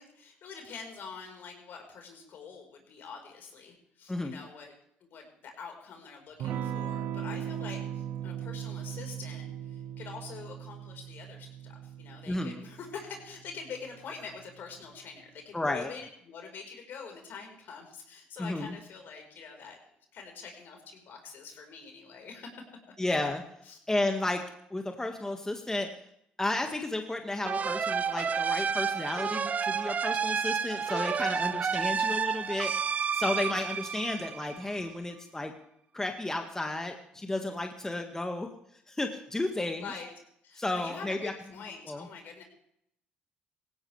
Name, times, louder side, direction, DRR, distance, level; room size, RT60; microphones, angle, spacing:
voice 1, 0.0-4.7 5.0-19.8 20.1-22.5 23.6-23.8 39.8-40.1 40.4-42.4, left 5 dB, 65° left, 3 dB, 4.8 m, -45 dB
voice 2, 4.1-4.4 12.3-12.6 15.5-15.9 18.4-18.8 23.0-23.4 23.9-24.4 24.7-25.9 26.4-35.5 35.9-38.5 38.9-39.9 40.6-41.3 41.9-42.1, left 2 dB, 15° left, 4 dB, 1.9 m, -32 dB
Electric guitar / Strum, 6.4-14.7, right 10 dB, 70° right, 1.4 m, -39 dB
sound 1, 27.5-34.9, right 6 dB, 40° right, 0.6 m, -30 dB
18.0 x 16.5 x 3.5 m, 0.72 s
supercardioid pair, 65°, 4 cm